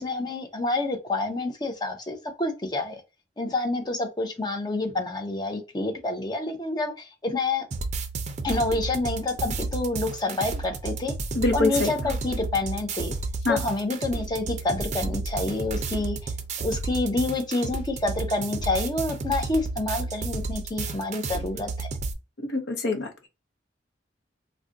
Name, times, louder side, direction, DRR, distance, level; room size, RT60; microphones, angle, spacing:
voice 1, 0.0-3.0 3.4-7.7 8.4-11.1 11.5-13.1 13.5-16.3 16.6-21.9, left 2 dB, 25° left, 0.7 m, -28 dB
sound 1, 7.7-22.1, right 3 dB, 40° right, 0.5 m, -32 dB
voice 2, 11.3-11.9 13.4-13.6 22.4-23.3, left 3 dB, 65° left, 0.8 m, -25 dB
2.4 x 2.2 x 3.8 m
head